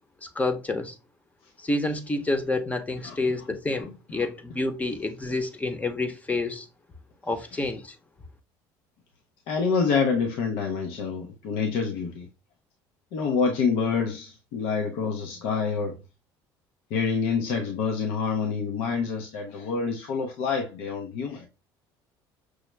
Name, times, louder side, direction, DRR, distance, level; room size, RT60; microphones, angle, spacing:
voice 1, 0.4-0.9 1.6-6.7 7.2-8.0, left 2 dB, 15° left, 0.8 m, -28 dB
voice 2, 9.5-12.3 13.1-16.0 16.9-21.5, left 5 dB, 80° left, 0.7 m, -27 dB
6.2 x 2.1 x 3.2 m
cardioid pair, 110°, 9 cm